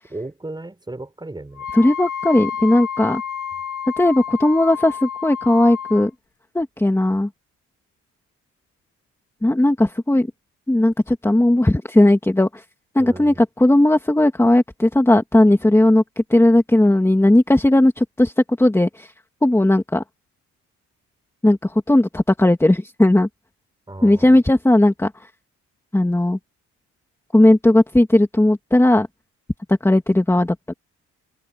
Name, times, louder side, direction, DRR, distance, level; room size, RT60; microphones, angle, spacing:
voice 1, 0.1-1.7 13.0-13.4 23.9-24.4, right 2 dB, 15° right, 7.1 m, -35 dB
Wind instrument woodwind instrument, 1.6-6.1, left 8 dB, 80° left, 3.8 m, -30 dB
voice 2, 1.7-3.2 4.0-6.1 6.5-7.3 9.4-10.3 10.7-12.6 12.9-18.3 18.6-19.1 19.4-20.0 21.4-23.3 24.0-25.1 25.9-26.4 27.3-29.1 29.7-30.7, left 1 dB, 10° left, 2.4 m, -16 dB
open air
cardioid pair, 90°, 30 cm